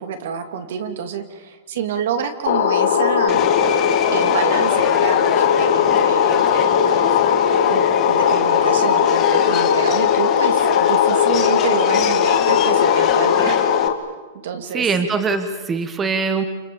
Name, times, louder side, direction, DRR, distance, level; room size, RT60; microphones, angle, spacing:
voice 1, 0.0-3.7 4.1-7.4 7.7-13.6 14.4-14.9, right 7 dB, 70° right, 7 dB, 3.0 m, -28 dB
sound 1, 2.5-13.9, left 8 dB, 75° left, 2.4 m, -18 dB
Subway metro underground, 3.3-13.9, left 9 dB, 25° left, 2.1 m, -27 dB
voice 2, 14.7-16.4, right 4 dB, 15° right, 8 dB, 1.6 m, -22 dB
29.0 x 27.5 x 7.3 m, 1.2 s
supercardioid pair, 165°, 0 cm